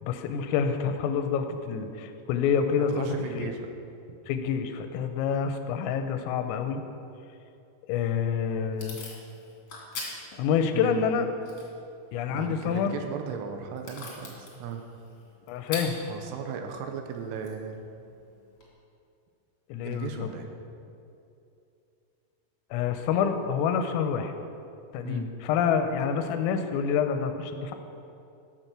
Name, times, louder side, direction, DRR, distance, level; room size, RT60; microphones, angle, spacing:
voice 1, 0.0-3.1 3.4-3.5 4.3-6.8 7.9-9.0 10.4-11.3 12.1-13.0 15.5-16.0 19.7-20.3 22.7-24.3 24.9-27.7, left 7 dB, 90° left, 7 dB, 3.5 m, -27 dB
voice 2, 2.9-3.7 10.7-11.2 12.3-14.8 16.1-17.8 19.8-20.5 25.0-25.3, right 7 dB, 85° right, 5 dB, 3.3 m, -36 dB
Packing tape duct tape / Tearing, 7.9-18.7, left 2 dB, 40° left, 2.2 m, -45 dB
14.0 x 7.5 x 5.9 m, 2.6 s
omnidirectional pair, 5.9 m